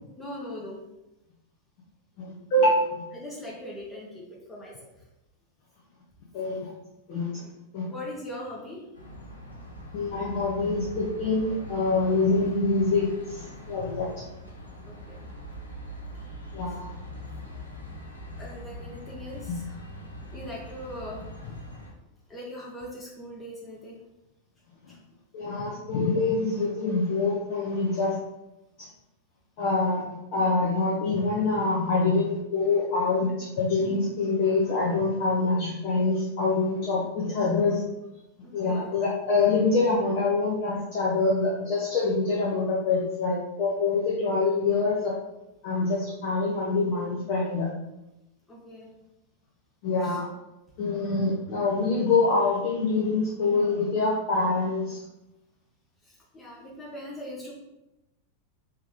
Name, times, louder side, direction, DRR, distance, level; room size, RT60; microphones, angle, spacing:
voice 1, 0.2-0.8 3.1-5.0 7.3-7.5 7.9-8.8 14.8-15.3 18.4-19.8 20.3-21.2 22.3-24.0 24.9-25.0 38.4-38.9 48.5-48.9 50.0-50.2 56.0-57.5, left 1 dB, 15° left, -5 dB, 0.9 m, -40 dB
voice 2, 2.2-2.9 6.3-6.7 7.1-7.3 7.7-7.8 9.9-14.3 16.5-17.0 19.5-19.6 24.8-24.9 25.3-28.2 28.8-28.9 29.6-30.0 30.3-37.8 38.5-45.1 45.6-47.7 49.8-50.3 50.8-55.0, left 3 dB, 45° left, -5 dB, 0.8 m, -25 dB
sound 1, 8.9-21.9, equal, 85° left, 0.8 m, -42 dB
3.4 x 3.0 x 3.5 m, 0.94 s
figure-of-eight pair, 90°, 0 cm